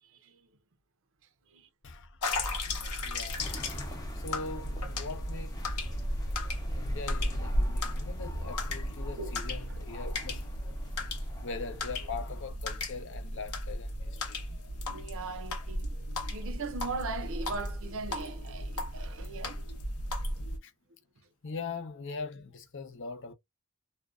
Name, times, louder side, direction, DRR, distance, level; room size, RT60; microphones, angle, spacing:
voice 1, 0.0-0.5 1.5-1.7 2.7-2.8 3.4-3.7 9.1-9.4 9.7-9.8 14.8-19.7, right 3 dB, 60° right, 0.5 m, -40 dB
voice 2, 1.8-3.5 4.2-5.6 6.7-10.4 11.4-14.6 20.6-20.7 21.4-23.3, left 4 dB, 55° left, 0.6 m, -41 dB
sound 1, 2.2-20.6, left 1 dB, 85° left, 0.8 m, -35 dB
sound 2, 3.4-12.4, left 1 dB, 15° left, 0.7 m, -45 dB
2.5 x 2.2 x 2.3 m
head